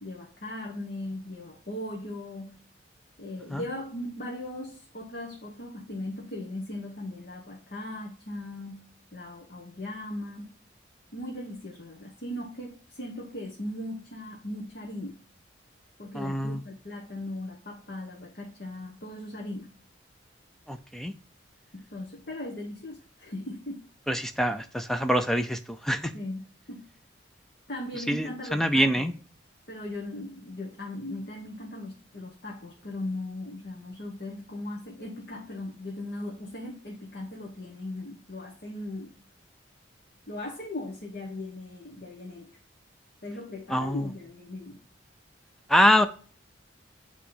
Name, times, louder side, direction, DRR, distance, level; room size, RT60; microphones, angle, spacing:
voice 1, 0.0-2.6 3.2-10.5 11.1-15.2 16.0-19.7 21.7-23.8 26.1-26.9 27.7-29.1 29.7-39.1 40.3-42.5 43.2-44.8, left 1 dB, 50° left, -1 dB, 1.1 m, -38 dB
voice 2, 16.1-16.6 20.7-21.1 24.1-26.1 28.1-29.1 43.7-44.1 45.7-46.1, equal, ahead, 8 dB, 0.4 m, -25 dB
8.6 x 3.1 x 3.8 m, 0.41 s
head